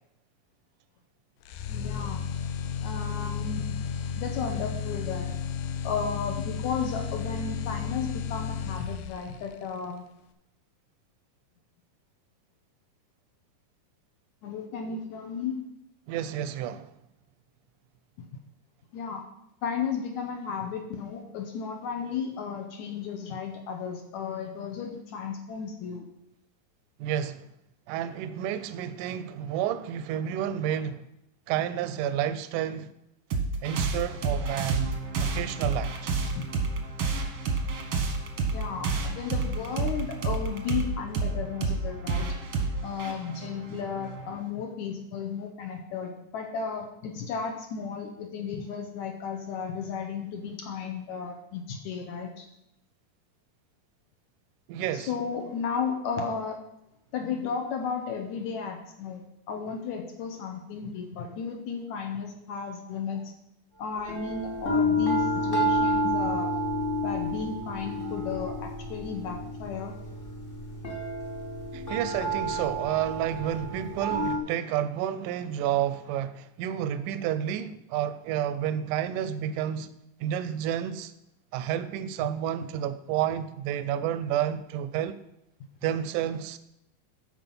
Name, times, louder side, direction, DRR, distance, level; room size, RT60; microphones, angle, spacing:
sound 1, 1.5-9.4, left 7 dB, 90° left, 2.4 m, -33 dB
voice 1, 1.7-2.2 2.8-3.7 4.2-5.3 5.8-10.0 14.4-15.6 18.2-18.3 18.9-19.2 19.6-26.1 36.3-36.5 38.5-42.3 42.8-52.5 54.9-56.6 57.1-63.3 63.8-66.5 67.0-69.9, left 6 dB, 70° left, 1.9 m, -34 dB
voice 2, 16.1-16.9 27.0-27.5 27.9-31.1 31.5-32.9 33.6-34.9 35.2-36.1 54.7-55.1 71.7-79.9 80.2-81.1 81.5-85.2 85.8-86.6, right 10 dB, 80° right, 1.9 m, -30 dB
sound 2, 33.3-44.4, right 4 dB, 65° right, 1.3 m, -30 dB
sound 3, 64.0-74.4, equal, 40° left, 0.7 m, -30 dB
13.0 x 4.7 x 5.4 m
omnidirectional pair, 4.0 m